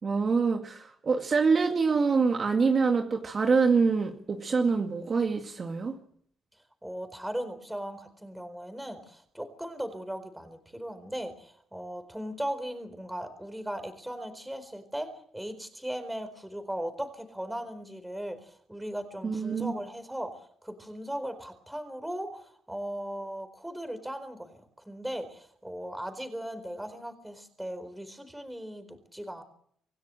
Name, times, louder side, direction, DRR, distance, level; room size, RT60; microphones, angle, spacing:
voice 1, 0.0-6.0 19.2-19.7, right 4 dB, 40° right, 3 dB, 2.1 m, -25 dB
voice 2, 6.8-24.5 24.8-29.4, equal, 5° right, 10 dB, 4.3 m, -38 dB
26.5 x 16.5 x 7.7 m, 0.65 s
cardioid pair, 110°, 0 cm